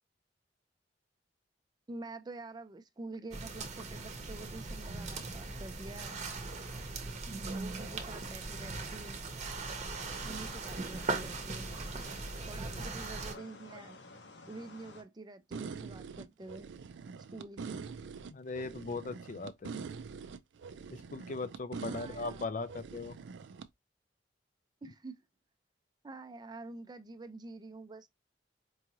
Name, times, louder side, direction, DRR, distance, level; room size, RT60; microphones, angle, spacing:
voice 1, 1.9-6.2 7.5-9.2 10.2-11.7 12.5-14.0 14.5-16.7 17.3-17.9 21.9-22.5 24.8-25.2 26.0-28.1, right 2 dB, 25° right, 0.4 m, -47 dB
sound 1, 3.3-13.4, right 3 dB, 40° right, 0.8 m, -39 dB
sound 2, 9.9-15.0, left 3 dB, 75° left, 0.9 m, -53 dB
sound 3, 15.5-23.7, right 5 dB, 90° right, 0.4 m, -44 dB
voice 2, 18.3-19.8 20.9-23.2, left 3 dB, 45° left, 0.4 m, -39 dB
4.6 x 2.6 x 2.9 m
head